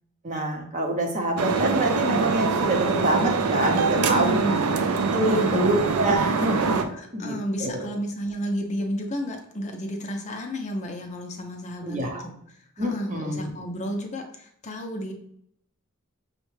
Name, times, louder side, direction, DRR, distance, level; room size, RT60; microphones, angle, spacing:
voice 1, 0.2-4.4 5.1-7.3 7.6-7.9 11.8-12.2 12.8-13.4, right 1 dB, 35° right, 2 dB, 0.7 m, -26 dB
sound 1, 1.4-6.8, right 4 dB, 85° right, 0.4 m, -24 dB
voice 2, 4.0-4.6 5.2-5.6 6.9-15.1, equal, 35° left, 3 dB, 0.5 m, -32 dB
5.7 x 2.1 x 3.1 m, 0.71 s
head